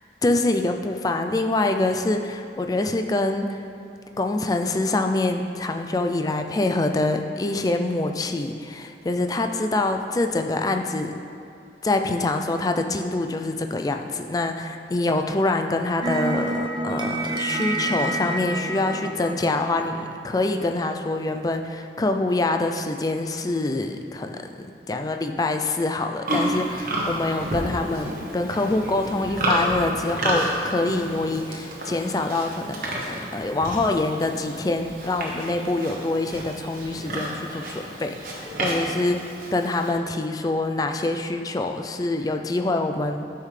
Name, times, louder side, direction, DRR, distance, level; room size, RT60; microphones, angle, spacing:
voice 1, 0.2-3.6 4.2-11.1 11.8-39.2 39.5-43.3, left 2 dB, 20° left, 5 dB, 0.3 m, -25 dB
sound 1, 16.0-20.3, right 2 dB, 25° right, 0.6 m, -28 dB
Livestock farm animals working animals, 26.2-39.9, right 1 dB, 50° right, 1.2 m, -30 dB
9.6 x 5.7 x 3.3 m, 2.6 s
head